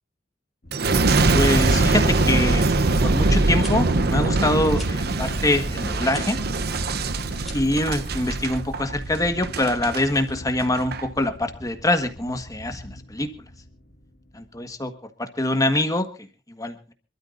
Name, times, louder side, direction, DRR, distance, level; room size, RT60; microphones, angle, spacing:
sound 1, 0.6-14.9, left 1 dB, 50° left, 1.7 m, -41 dB
Boom, 0.7-10.0 10.6-11.0, right 2 dB, 55° right, 0.9 m, -22 dB
voice 1, 1.3-2.6 3.0-6.4 7.5-13.3 14.6-14.9 15.2-16.0 16.6-16.7, left 1 dB, 20° left, 7 dB, 1.6 m, -24 dB
sound 2, 3.6-3.7 4.7-4.9 6.1-6.3 7.4-7.8, left 1 dB, ahead, 3.5 m, -40 dB
27.0 x 13.0 x 2.6 m, 0.33 s
head